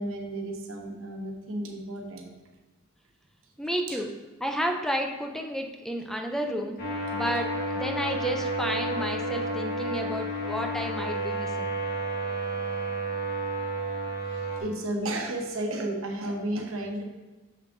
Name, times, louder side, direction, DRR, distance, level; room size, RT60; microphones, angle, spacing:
voice 1, 0.0-2.3 3.9-4.0 6.4-6.7 14.3-17.0, right 1 dB, 80° right, 2 dB, 1.1 m, -33 dB
voice 2, 3.6-4.1 4.4-6.8 7.1-7.5 7.8-11.7, equal, ahead, 3 dB, 0.4 m, -31 dB
sound 1, 6.8-14.6, right 1 dB, 50° left, 1.4 m, -31 dB
6.9 x 6.5 x 2.6 m, 1.2 s
head